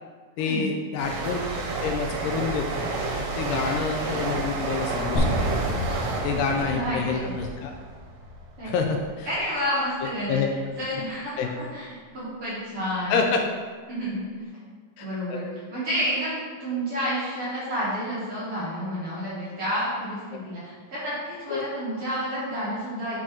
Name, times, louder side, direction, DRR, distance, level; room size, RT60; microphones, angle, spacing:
voice 1, 0.4-1.4 1.8-2.9 3.2-5.6 6.2-7.7 8.7-9.3 10.3-10.5 11.4-11.5 13.1-13.4 15.0-15.4 20.3-20.4 21.5-21.7, left 5 dB, 80° left, 2 dB, 2.1 m, -28 dB
sound 1, 1.0-8.4 8.7-9.1, right 3 dB, 75° right, 2.4 m, -30 dB
sound 2, 5.2-9.2, equal, 60° left, 1.3 m, -30 dB
voice 2, 6.7-7.3 8.6-8.7 9.3-10.4 10.8-13.2 13.9-14.5 15.0-23.2, equal, 50° right, -9 dB, 1.8 m, -30 dB
6.1 x 4.6 x 4.2 m, 1.6 s
omnidirectional pair, 4.0 m